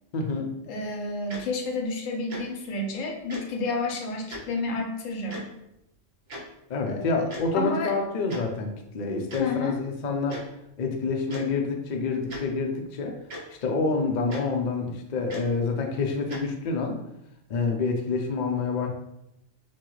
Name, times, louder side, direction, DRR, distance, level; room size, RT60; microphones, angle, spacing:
voice 1, 0.1-0.5 6.7-10.4 10.8-13.2 13.6-17.0 17.5-18.9, left 4 dB, 50° left, 2 dB, 0.6 m, -27 dB
voice 2, 0.7-5.5 6.9-7.2 7.5-7.9 9.4-9.8, left 3 dB, 85° left, 3 dB, 1.1 m, -30 dB
Tick-tock, 1.3-1.4 2.3-2.4 3.3-3.4 4.3-4.4 5.3-5.4 6.3-6.4 7.3-7.5 8.3-8.4 9.3-9.4 10.3-10.4 11.3-11.4 12.3-12.4 13.3-13.4 14.3-14.4 15.3-15.5 16.3-16.4, equal, 55° right, 1.2 m, -37 dB
5.8 x 2.3 x 3.1 m, 0.83 s
omnidirectional pair, 1.3 m